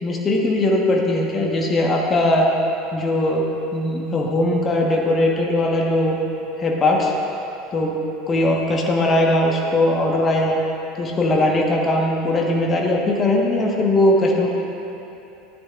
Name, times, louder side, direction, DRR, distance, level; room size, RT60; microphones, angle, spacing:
voice 1, 0.0-2.5 2.9-3.5 3.7-6.2 6.6-7.1 7.7-8.0 8.3-10.6 11.0-14.5, left 1 dB, 30° left, -1 dB, 1.3 m, -19 dB
14.0 x 9.8 x 2.5 m, 3.0 s
figure-of-eight pair, 75°, 0 cm